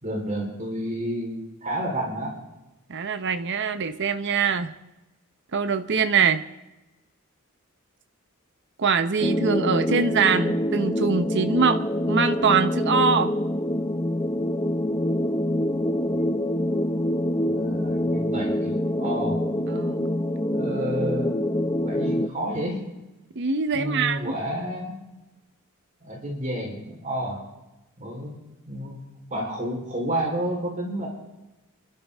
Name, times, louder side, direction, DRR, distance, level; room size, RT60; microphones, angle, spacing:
voice 1, 0.0-2.3 16.1-16.2 17.4-19.4 20.5-21.4 21.8-22.8 23.7-25.0 26.0-27.4 28.0-28.4 28.7-29.0 29.3-31.1, right 1 dB, 35° right, -1 dB, 4.0 m, -30 dB
voice 2, 2.9-4.7 5.5-6.4 8.8-11.8 12.1-13.3 19.7-20.1 23.4-24.3, right 5 dB, 55° right, 9 dB, 0.9 m, -23 dB
sound 1, 9.2-22.3, left 1 dB, 20° left, 0.8 m, -25 dB
29.0 x 12.5 x 3.6 m, 1.0 s
head